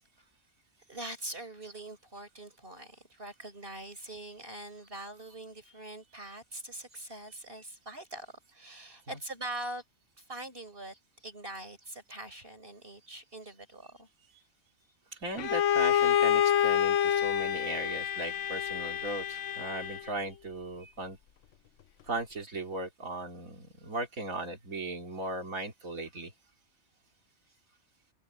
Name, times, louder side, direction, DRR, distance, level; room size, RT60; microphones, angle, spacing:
voice 1, 0.9-9.8 10.2-10.9 11.2-14.1, right 2 dB, 45° right, 6.4 m, -43 dB
voice 2, 15.2-21.2 22.1-26.3, right 2 dB, 85° right, 3.4 m, -38 dB
Bowed string instrument, 15.4-20.2, left 9 dB, 65° left, 1.1 m, -27 dB
omnidirectional pair, 1.4 m